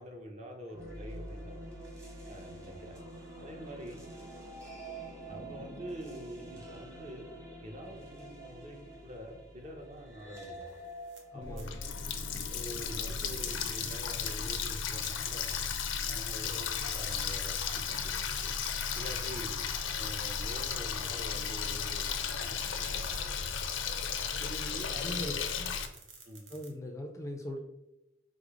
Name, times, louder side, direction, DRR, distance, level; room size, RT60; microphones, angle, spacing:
voice 1, 0.0-1.7 2.3-2.9 3.4-4.0 5.3-7.3 7.6-10.7 11.3-11.8 12.5-15.6 16.1-18.5 18.9-19.6 19.9-23.6 24.4-25.5 26.2-26.5, equal, 35° right, 1 dB, 0.8 m, -46 dB
sound 1, 0.7-12.8, right 1 dB, 15° right, 1.1 m, -47 dB
sound 2, 10.7-11.2 11.6-11.7 12.4-12.8 13.2-15.1 15.5-15.6 16.5-16.6 19.3-19.6 20.3-20.4 22.7-23.2 24.2-24.3 24.7-25.0 25.3-26.7, right 4 dB, 80° right, 0.8 m, -53 dB
voice 2, 11.3-11.9 19.7-19.8 24.4-24.5 24.9-25.7 26.5-27.6, left 1 dB, 15° left, 3 dB, 0.4 m, -41 dB
Water tap faucet, 11.4-25.9, left 6 dB, 85° left, 0.5 m, -35 dB
5.0 x 2.0 x 4.8 m, 0.92 s
head